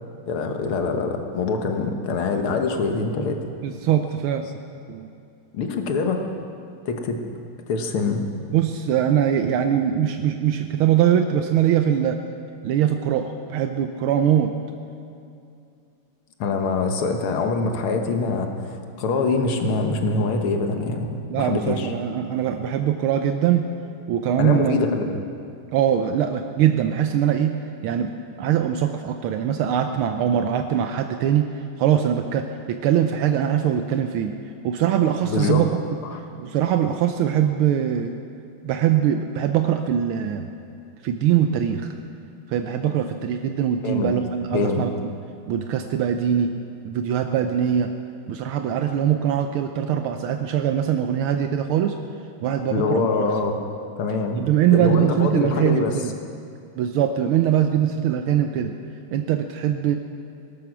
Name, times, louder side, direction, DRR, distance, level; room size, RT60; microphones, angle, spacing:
voice 1, 0.3-3.4 5.5-6.2 6.9-7.2 7.7-8.2 16.4-21.9 24.4-25.2 35.2-35.6 36.0-36.2 43.8-44.1 44.5-44.8 52.7-53.6 54.0-54.4 54.7-55.9, left 4 dB, 80° left, 4 dB, 2.2 m, -24 dB
voice 2, 3.6-4.5 4.9-5.1 8.5-12.2 12.6-14.5 21.3-23.7 24.1-25.0 25.7-27.6 27.8-28.1 28.4-31.5 31.8-34.3 34.6-35.7 36.4-38.1 38.6-40.5 41.0-41.9 42.5-44.9 45.5-46.6 46.8-47.9 48.3-52.0 52.4-53.1 54.4-56.1 56.8-58.7 59.1-60.0, right 9 dB, 80° right, 6 dB, 1.5 m, -22 dB
18.5 x 13.0 x 6.1 m, 2.5 s
omnidirectional pair, 2.3 m